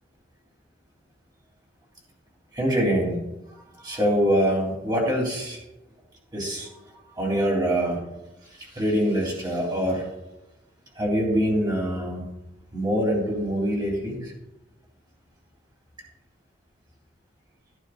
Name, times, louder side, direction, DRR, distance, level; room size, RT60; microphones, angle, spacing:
voice 1, 2.5-3.2 3.8-5.6 6.3-6.7 7.2-8.0 8.7-10.1 11.0-12.2 12.7-14.3, equal, 25° right, -2 dB, 3.5 m, -24 dB
14.5 x 10.0 x 2.6 m, 0.96 s
head